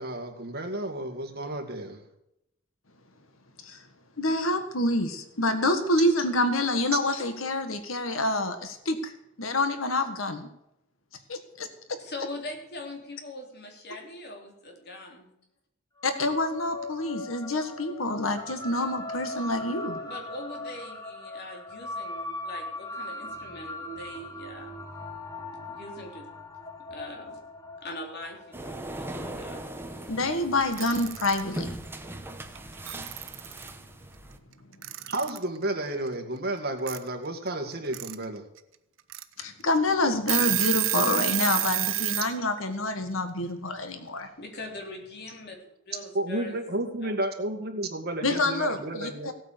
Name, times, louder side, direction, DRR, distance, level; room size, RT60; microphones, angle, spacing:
voice 1, 0.0-2.0 35.1-38.4 46.1-49.3, right 1 dB, 50° right, 4 dB, 2.2 m, -32 dB
voice 2, 4.2-9.1 9.4-10.5 11.3-12.0 16.0-20.0 30.1-31.7 39.4-44.3 48.2-49.3, left 2 dB, 80° left, 8 dB, 1.7 m, -27 dB
voice 3, 12.0-15.4 20.0-24.8 25.4-26.3 26.8-27.4 27.8-30.1 44.4-47.1, left 2 dB, 55° left, 2 dB, 3.5 m, -42 dB
sound 1, 16.0-30.7, left 2 dB, 15° left, 1.7 m, -40 dB
sound 2, 28.5-34.4, right 1 dB, 10° right, 1.2 m, -39 dB
Alarm / Clock, 30.6-31.4 32.5-32.6 32.9-33.7 34.8-35.4 36.9-37.0 37.7-38.1 38.6-38.7 39.1-39.2 39.8-39.9 40.1-42.3, right 15 dB, 75° right, 0.9 m, -28 dB
17.0 x 8.8 x 6.9 m, 0.82 s
head